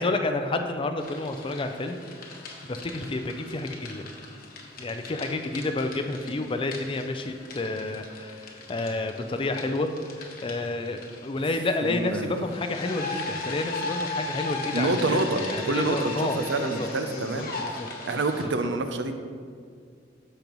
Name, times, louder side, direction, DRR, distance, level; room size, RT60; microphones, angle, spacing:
voice 1, 0.0-2.0 2.7-4.1 4.8-17.9 18.4-18.7, left 2 dB, 30° left, 7 dB, 0.5 m, -30 dB
sound 1, 1.0-18.5, left 3 dB, 55° left, 1.1 m, -38 dB
voice 2, 11.8-12.3 14.7-17.5 18.1-19.1, right 2 dB, 90° right, 7 dB, 0.6 m, -27 dB
13.0 x 5.3 x 3.1 m, 2.1 s
head